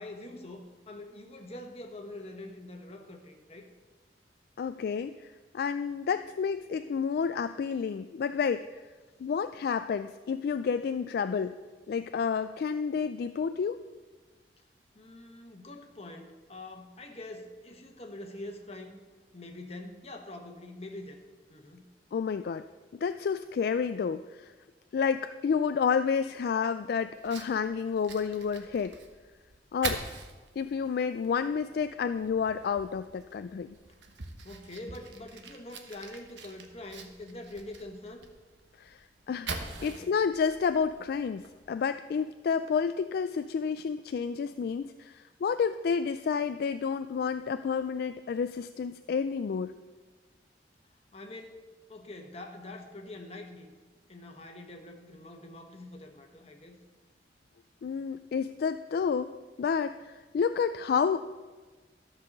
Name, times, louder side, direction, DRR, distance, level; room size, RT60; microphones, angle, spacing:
voice 1, 0.0-3.7 14.9-19.0 19.3-21.2 21.5-21.8 34.4-38.2 39.8-40.3 51.1-53.7 54.1-56.8, left 2 dB, 35° left, 3 dB, 1.3 m, -45 dB
voice 2, 4.6-8.8 9.2-11.6 11.9-13.8 22.1-22.7 23.0-24.5 24.9-28.9 29.7-30.0 30.6-33.8 38.8-39.5 39.8-49.7 57.8-59.3 59.6-61.2, left 6 dB, 60° left, 10 dB, 0.3 m, -30 dB
Fire, 27.1-41.7, right 4 dB, 90° right, 1.1 m, -44 dB
12.5 x 5.6 x 6.7 m, 1.3 s
head